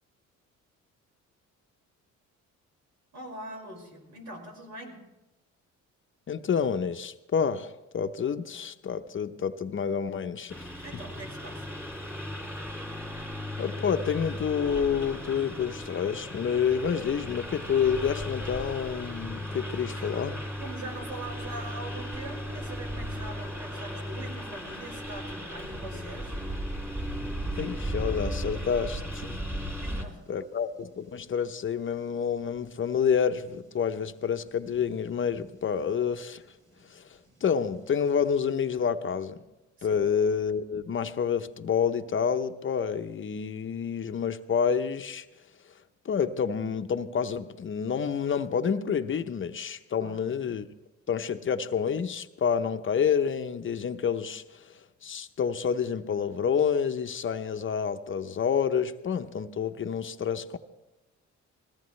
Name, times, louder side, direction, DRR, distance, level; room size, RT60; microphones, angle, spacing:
voice 1, 3.1-5.0 10.8-11.7 20.0-20.1 20.6-26.4 29.8-30.2 39.8-40.0 50.0-50.2, right 2 dB, 65° right, 5.3 m, -42 dB
voice 2, 6.3-10.7 13.6-20.4 27.6-29.4 30.3-36.4 36.9-39.4 39.8-45.2 46.0-50.7 51.1-60.6, left 7 dB, 40° left, 0.7 m, -28 dB
Engine, 10.5-30.0, equal, 10° right, 2.7 m, -36 dB
sound 1, 22.1-38.7, right 1 dB, 40° right, 5.0 m, -57 dB
21.0 x 16.5 x 3.2 m
cardioid pair, 90°, 30 cm